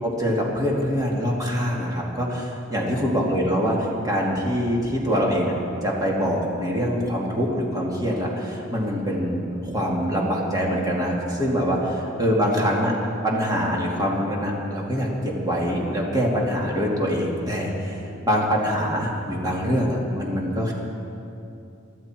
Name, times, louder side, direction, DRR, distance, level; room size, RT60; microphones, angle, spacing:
voice 1, 0.0-5.5 5.8-12.9 13.2-20.7, equal, 20° right, -3 dB, 2.6 m, -24 dB
24.0 x 12.5 x 4.5 m, 2.7 s
head